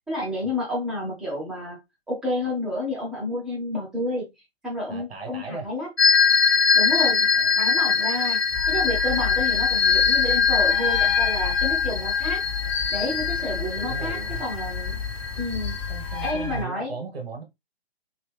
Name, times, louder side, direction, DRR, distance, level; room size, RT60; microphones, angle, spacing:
voice 1, 0.1-1.8 2.1-4.3 4.6-5.9 6.7-7.3 7.5-8.4 8.7-12.4 12.9-15.0 15.4-15.8 16.2-16.9, left 1 dB, ahead, 0.4 m, -30 dB
voice 2, 4.9-5.7 6.9-7.5 12.6-14.4 15.9-17.4, right 4 dB, 70° right, 1.5 m, -38 dB
sound 1, 6.0-16.3, left 6 dB, 85° left, 0.7 m, -22 dB
sound 2, 8.5-16.6, left 6 dB, 30° left, 0.8 m, -32 dB
3.0 x 2.6 x 3.4 m
figure-of-eight pair, 125°, 31 cm